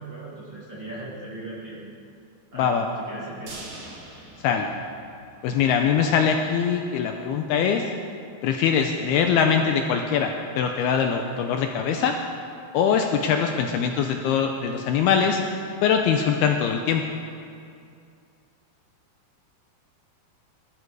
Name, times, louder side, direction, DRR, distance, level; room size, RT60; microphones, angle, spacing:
voice 1, 0.0-1.8 2.5-2.7 3.0-3.6, right 2 dB, 35° right, -7 dB, 2.4 m, -38 dB
voice 2, 2.6-2.9 4.4-4.7 5.4-7.8 8.4-12.2 12.7-15.4 15.8-17.0, left 7 dB, 80° left, 4 dB, 2.4 m, -22 dB
sound 1, 3.5-5.6 5.9-6.0 6.4-6.5, right 2 dB, 55° right, 4.5 m, -43 dB
20.0 x 13.5 x 4.8 m, 2.4 s
omnidirectional pair, 5.1 m